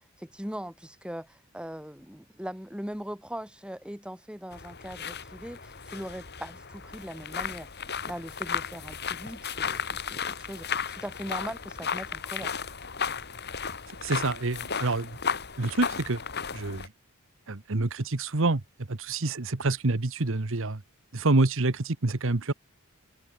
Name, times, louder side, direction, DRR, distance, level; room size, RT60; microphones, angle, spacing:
voice 1, 0.0-12.6, equal, 5° right, 3.3 m, -40 dB
sound 1, 4.5-16.9, left 6 dB, 50° left, 3.8 m, -35 dB
voice 2, 14.0-15.1 15.6-16.2 16.5-16.9 17.5-18.6 18.9-20.8 21.1-22.5, right 2 dB, 60° right, 1.2 m, -27 dB
head